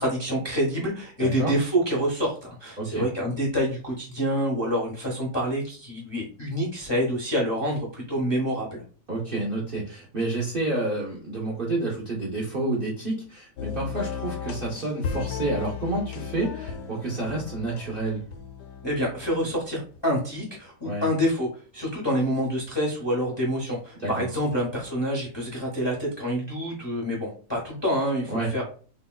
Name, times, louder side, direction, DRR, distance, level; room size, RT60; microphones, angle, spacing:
voice 1, 0.0-8.8 18.8-28.6, equal, 25° left, -4 dB, 0.5 m, -27 dB
voice 2, 1.2-1.5 2.8-3.0 9.1-18.2 20.8-21.0 24.0-24.3 28.3-28.5, right 2 dB, 50° right, -3 dB, 0.6 m, -29 dB
sound 1, 13.6-20.0, left 7 dB, 85° left, 1.3 m, -35 dB
3.4 x 2.9 x 2.2 m, 0.40 s
omnidirectional pair, 1.8 m